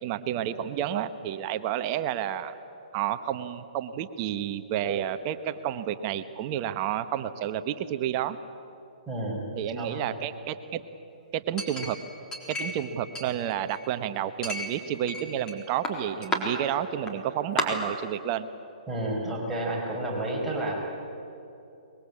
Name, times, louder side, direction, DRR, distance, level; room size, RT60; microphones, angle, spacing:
voice 1, 0.0-2.5 2.9-8.4 9.5-10.8 11.3-12.0 12.5-18.5, right 10 dB, 35° right, 11 dB, 1.1 m, -30 dB
voice 2, 9.1-10.2 18.9-20.8, right 1 dB, 5° right, -5 dB, 5.8 m, -31 dB
Chink clink, 11.6-12.8 13.1-13.9 14.4-15.5 15.8-16.4 17.1-17.2 17.6-17.7, left 1 dB, 15° left, 4.0 m, -32 dB
24.0 x 22.0 x 8.6 m, 2.8 s
hypercardioid pair, 140°, 4 cm